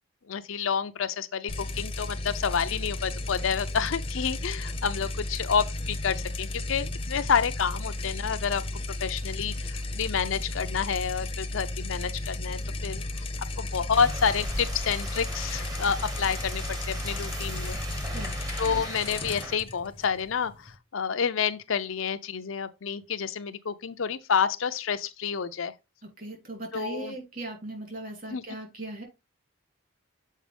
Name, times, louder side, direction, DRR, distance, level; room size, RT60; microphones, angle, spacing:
voice 1, 0.3-8.6 9.0-13.2 13.6-17.8 18.6-25.7 26.7-27.1 28.3-28.4, left 6 dB, 65° left, 0.6 m, -29 dB
sound 1, 1.5-20.8, left 2 dB, 25° left, 0.7 m, -34 dB
sound 2, 13.9-19.6, right 1 dB, 20° right, 1.0 m, -39 dB
voice 2, 26.2-29.0, right 2 dB, 40° right, 2.5 m, -38 dB
7.4 x 4.5 x 3.4 m
head